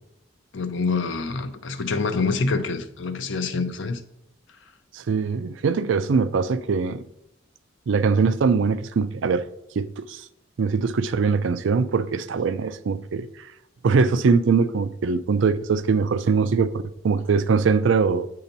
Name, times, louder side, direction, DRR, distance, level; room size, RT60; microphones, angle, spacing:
voice 1, 0.5-4.0, left 4 dB, 80° left, 0.6 m, -26 dB
voice 2, 4.9-7.0 7.9-9.4 9.8-10.2 10.6-13.3 13.8-16.7 17.0-18.3, right 5 dB, 80° right, 0.4 m, -22 dB
7.9 x 2.9 x 5.2 m
head